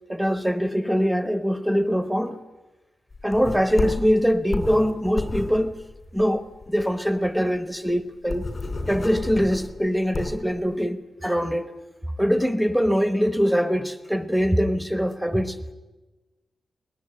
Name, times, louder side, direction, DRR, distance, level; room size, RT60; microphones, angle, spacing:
voice 1, 0.1-2.4 3.2-5.8 6.1-8.5 8.9-11.7 12.2-15.6, equal, ahead, 1.0 m, -23 dB
sound 1, 3.1-6.8 7.2-7.3 7.5-7.6 8.0-10.5, left 3 dB, 35° left, 4.6 m, -31 dB
21.5 x 19.0 x 9.8 m
wide cardioid pair, 170°, 0 cm